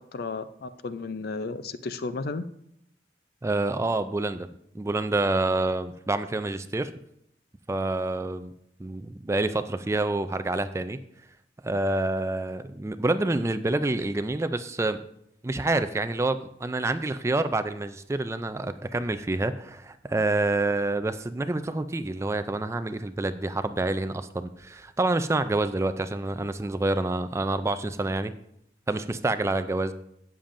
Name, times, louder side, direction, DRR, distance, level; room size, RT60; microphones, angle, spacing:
voice 1, 0.1-2.5, left 3 dB, 60° left, 12 dB, 0.5 m, -33 dB
voice 2, 3.4-4.5 4.7-6.9 7.7-8.5 8.8-11.0 11.6-15.0 15.4-28.3 28.9-29.9, right 2 dB, 15° right, 11 dB, 0.3 m, -27 dB
12.5 x 8.7 x 2.6 m, 0.74 s
head